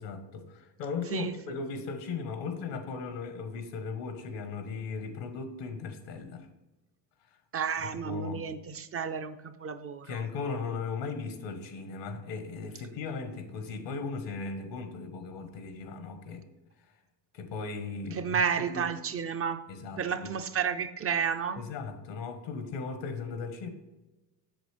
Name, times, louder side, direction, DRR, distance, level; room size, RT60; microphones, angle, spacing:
voice 1, 0.0-6.5 8.0-8.4 10.0-16.4 17.3-18.9 19.7-20.3 21.6-23.7, left 4 dB, 80° left, 8 dB, 1.3 m, -37 dB
voice 2, 7.5-10.2 18.1-19.7 20.0-21.6, right 7 dB, 35° right, 9 dB, 0.4 m, -31 dB
7.9 x 6.6 x 3.3 m, 1.1 s
cardioid pair, 110°, 43 cm